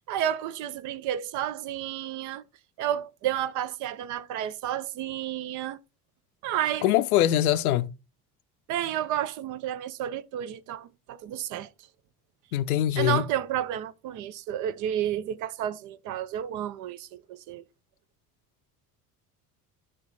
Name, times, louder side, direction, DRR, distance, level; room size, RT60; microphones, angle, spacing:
voice 1, 0.1-2.4 2.8-5.8 6.4-6.9 8.7-11.7 13.0-17.6, right 11 dB, 40° right, 0.5 m, -31 dB
voice 2, 6.8-7.9 12.5-13.2, left 12 dB, 65° left, 0.6 m, -23 dB
9.7 x 3.5 x 4.0 m
figure-of-eight pair, 60°, 47 cm